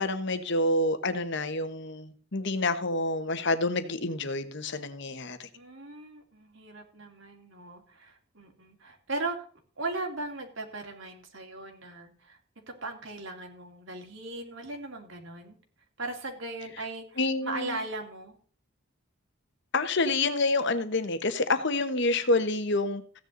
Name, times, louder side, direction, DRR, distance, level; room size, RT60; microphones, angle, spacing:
voice 1, 0.0-5.5 17.2-17.8 19.7-23.0, left 2 dB, 60° left, 1.3 m, -28 dB
voice 2, 5.5-9.5 9.8-12.4 12.7-15.6 16.0-18.4, right 2 dB, 65° right, 2.5 m, -38 dB
15.5 x 9.5 x 4.0 m
head